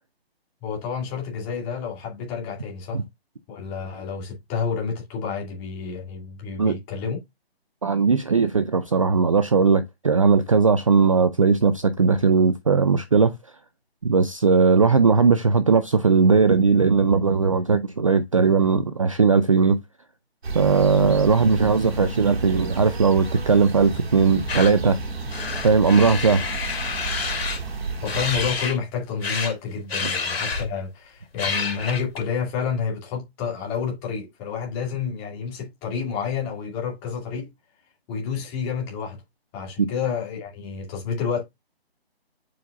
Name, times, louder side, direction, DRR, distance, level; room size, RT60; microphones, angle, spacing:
voice 1, 0.6-3.0 3.5-7.2 28.0-37.5 38.1-39.2 39.5-41.4, left 6 dB, 15° left, 2.2 m, -29 dB
voice 2, 7.8-13.3 14.0-19.8 20.5-25.0 25.6-26.5 30.0-30.1 39.8-39.9, right 5 dB, 35° right, 0.4 m, -18 dB
sound 1, 20.4-28.5, right 3 dB, 80° right, 3.1 m, -32 dB
sound 2, 24.5-24.7 25.3-27.6 28.1-28.8 29.2-29.5 29.9-30.8 31.4-32.2, left 5 dB, 70° left, 2.9 m, -28 dB
7.5 x 5.5 x 2.4 m
hypercardioid pair, 160°, 31 cm